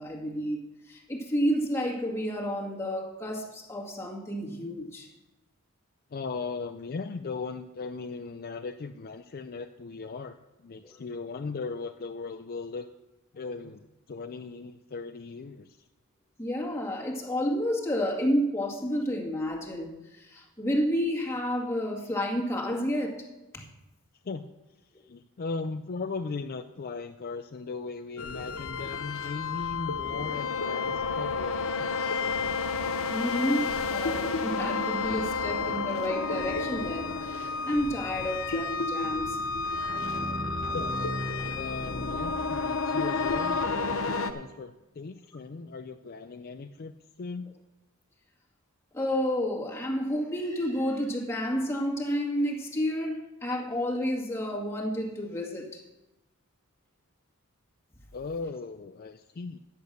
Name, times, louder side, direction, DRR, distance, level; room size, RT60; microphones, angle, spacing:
voice 1, 0.0-5.1 10.8-10.9 13.4-13.5 16.4-23.3 23.5-23.7 33.1-39.4 48.9-55.8, equal, 15° left, -2 dB, 2.0 m, -30 dB
voice 2, 6.1-12.9 13.3-15.9 24.2-24.4 24.9-32.4 40.6-40.9 41.5-47.5 58.1-59.6, left 4 dB, 45° left, 7 dB, 0.4 m, -38 dB
sound 1, 28.2-44.3, left 4 dB, 70° left, 0.8 m, -31 dB
sound 2, 39.9-43.0, equal, 30° left, 1.3 m, -37 dB
11.0 x 8.2 x 6.6 m, 0.99 s
head